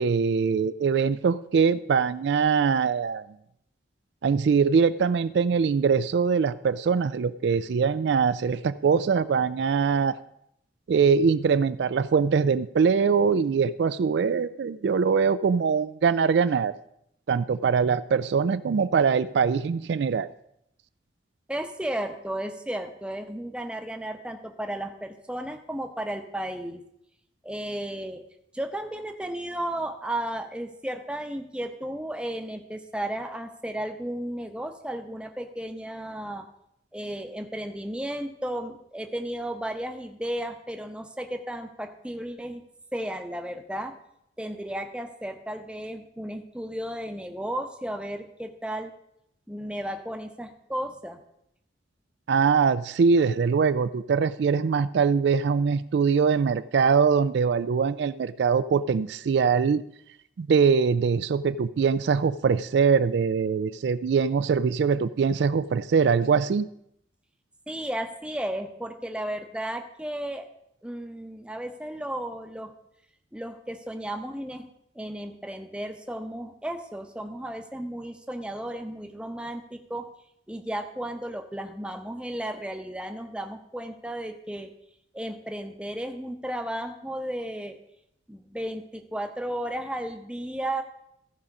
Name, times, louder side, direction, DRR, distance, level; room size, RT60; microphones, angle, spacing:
voice 1, 0.0-3.2 4.2-10.2 10.9-16.7 17.3-20.3 52.3-59.8 60.4-66.7, right 6 dB, 70° right, 14 dB, 0.3 m, -23 dB
voice 2, 21.5-26.8 27.4-28.2 28.5-36.5 36.9-42.6 42.9-43.9 44.4-48.9 49.5-51.2 67.7-70.5 70.8-72.7 73.3-74.7 75.0-80.1 80.5-84.7 85.1-87.8 88.3-90.8, right 1 dB, 5° right, 6 dB, 0.7 m, -34 dB
15.0 x 5.0 x 5.3 m, 0.76 s
head